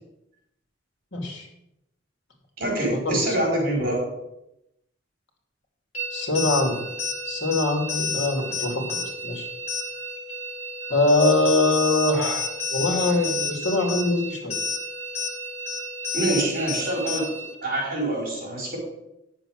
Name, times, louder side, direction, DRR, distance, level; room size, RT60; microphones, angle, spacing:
voice 1, 1.1-1.5 3.0-3.3 6.1-6.8 7.2-9.5 10.9-12.4 12.7-14.6, left 2 dB, 65° left, 2 dB, 2.7 m, -23 dB
voice 2, 2.6-4.0 16.1-18.8, right 1 dB, 50° right, 0 dB, 5.0 m, -25 dB
sound 1, 5.9-17.5, left 3 dB, 35° left, 1.9 m, -31 dB
10.0 x 7.2 x 6.4 m, 0.83 s
head